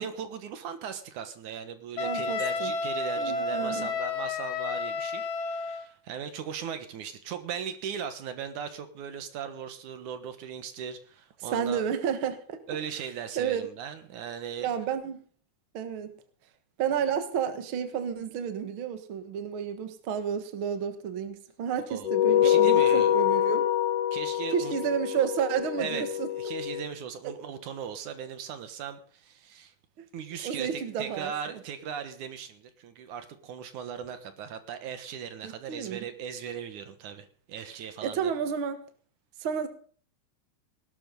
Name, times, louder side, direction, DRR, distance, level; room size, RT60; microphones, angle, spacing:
voice 1, 0.0-11.8 12.7-14.7 21.9-23.1 24.1-24.8 25.8-26.0 26.3-29.7 30.1-38.3, right 8 dB, 75° right, 9 dB, 2.8 m, -38 dB
Wind instrument woodwind instrument, 2.0-5.9, left 4 dB, 60° left, 2.3 m, -31 dB
voice 2, 2.0-2.7 3.2-3.9 11.5-12.6 13.4-13.6 14.6-15.2 15.7-16.1 16.8-23.7 24.5-26.3 30.4-31.6 35.4-36.1 38.0-38.8 39.4-39.7, right 8 dB, 50° right, 8 dB, 2.0 m, -31 dB
sound 1, 22.0-26.8, left 11 dB, 80° left, 2.2 m, -25 dB
18.5 x 12.0 x 3.9 m, 0.43 s
omnidirectional pair, 3.5 m